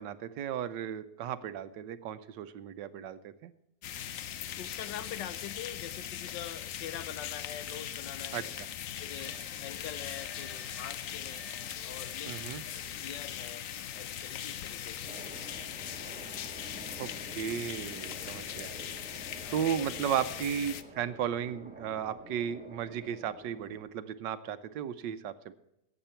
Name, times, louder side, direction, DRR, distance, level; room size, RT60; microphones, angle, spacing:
voice 1, 0.0-3.5 8.3-8.7 12.3-12.6 17.0-17.1 17.3-18.7 19.5-25.5, right 9 dB, 80° right, 12 dB, 1.4 m, -35 dB
sound 1, 3.8-20.8, left 10 dB, 60° left, 0.9 m, -40 dB
voice 2, 4.6-8.5 9.0-11.5 11.8-15.2 19.4-20.6, left 10 dB, 80° left, 14 dB, 1.4 m, -45 dB
sound 2, 9.1-15.9, left 3 dB, 20° left, 5.5 m, -54 dB
sound 3, 15.1-23.8, equal, 5° right, 1.0 m, -49 dB
17.0 x 7.7 x 4.4 m, 0.83 s
omnidirectional pair, 1.9 m